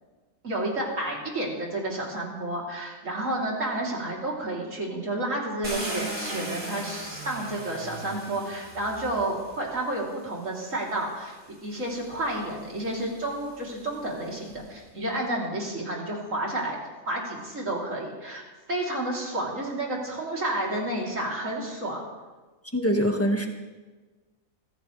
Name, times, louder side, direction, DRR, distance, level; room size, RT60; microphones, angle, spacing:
voice 1, 0.4-11.3 11.6-16.8 17.0-22.0, right 1 dB, 65° right, -3 dB, 4.0 m, -31 dB
Car, 5.6-9.7 10.7-10.8 11.3-14.6, right 1 dB, 45° right, 5.0 m, -38 dB
voice 2, 22.7-23.5, equal, 10° left, 2 dB, 1.8 m, -23 dB
24.0 x 15.5 x 3.4 m, 1.3 s
omnidirectional pair, 1.5 m